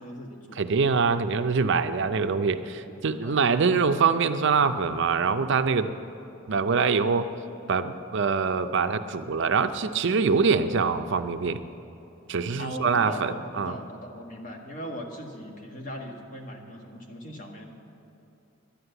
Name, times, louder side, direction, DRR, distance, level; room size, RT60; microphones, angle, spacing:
voice 1, 0.0-0.6 3.2-3.4 12.6-17.6, equal, 40° left, 1 dB, 1.6 m, -39 dB
voice 2, 0.6-5.9 6.5-7.3 7.7-11.6 12.3-13.7, right 5 dB, 60° right, 10 dB, 0.5 m, -24 dB
11.0 x 10.0 x 7.9 m, 2.9 s
head